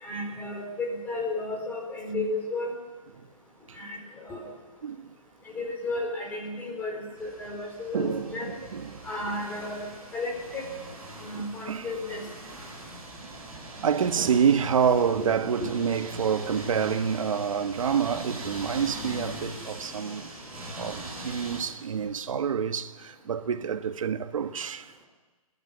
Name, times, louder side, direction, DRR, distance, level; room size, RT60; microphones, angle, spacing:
voice 1, 0.0-2.7 3.8-4.4 5.5-8.5 9.0-10.6 11.2-12.2 15.1-15.3 15.6-15.7, left 2 dB, 10° left, 4.7 m, -33 dB
voice 2, 4.8-5.1 7.9-9.0 11.3-11.9 13.2-13.4 13.8-20.3 20.8-24.9, right 7 dB, 65° right, 1.4 m, -27 dB
sound 1, 7.1-21.6, right 1 dB, 5° right, 6.8 m, -41 dB
28.5 x 11.0 x 9.6 m
hypercardioid pair, 160°, 19 cm